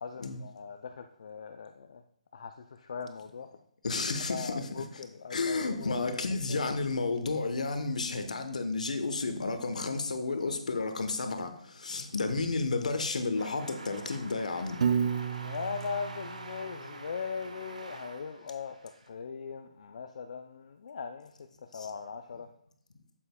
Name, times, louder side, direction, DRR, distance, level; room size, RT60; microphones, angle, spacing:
voice 1, 0.0-2.0 2.3-3.5 4.3-6.1 6.5-6.7 15.4-21.3 21.7-22.5, left 5 dB, 60° left, 6 dB, 0.4 m, -39 dB
voice 2, 3.8-5.0 5.3-14.8 21.7-21.9, left 3 dB, 80° left, 8 dB, 0.9 m, -32 dB
sound 1, 13.3-19.1, right 3 dB, 90° right, 1.0 m, -46 dB
Piano, 14.8-17.0, right 7 dB, 55° right, 0.4 m, -32 dB
8.1 x 7.5 x 2.2 m, 0.68 s
hypercardioid pair, 150°, 4 cm